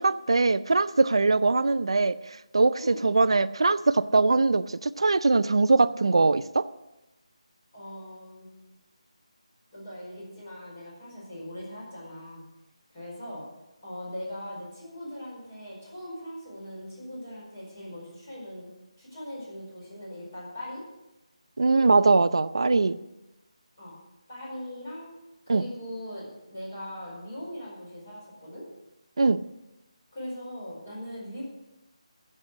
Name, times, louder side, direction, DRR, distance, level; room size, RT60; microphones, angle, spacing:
voice 1, 0.0-2.2 2.5-6.7 21.6-23.0 25.5-25.6 29.2-29.4, right 3 dB, 50° right, 15 dB, 0.5 m, -22 dB
voice 2, 2.7-3.2 7.7-8.5 9.7-12.4 12.9-13.4 13.8-18.7 19.0-20.8 23.8-23.9 24.3-25.1 25.5-28.7 30.1-31.4, left 1 dB, 20° left, -6 dB, 4.8 m, -40 dB
15.0 x 7.5 x 6.3 m, 0.96 s
figure-of-eight pair, 180°, 4 cm